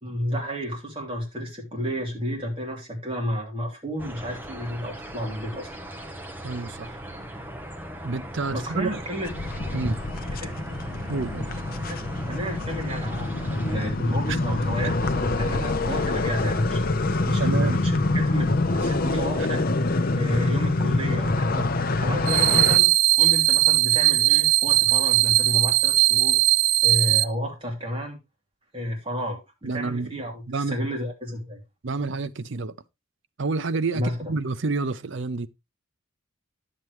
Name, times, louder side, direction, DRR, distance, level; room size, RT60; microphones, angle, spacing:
voice 1, 0.0-5.7 8.5-9.3 10.4-10.5 11.8-12.0 12.3-16.8 17.2-19.6 20.1-22.9 23.2-26.4 26.8-28.2 28.7-31.6 33.9-34.1, equal, 25° right, 2.9 m, -31 dB
sound 1, 4.0-13.9, right 1 dB, 10° right, 1.0 m, -38 dB
voice 2, 6.4-7.0 8.0-9.0 9.7-10.0 11.1-11.5 17.4-17.8 29.6-30.2 30.5-30.8 31.8-32.8 33.4-35.5, right 3 dB, 60° right, 0.6 m, -28 dB
sound 2, 9.2-22.8, left 2 dB, 45° left, 0.6 m, -25 dB
sound 3, 22.3-27.2, right 18 dB, 90° right, 0.8 m, -19 dB
10.5 x 7.4 x 3.1 m
head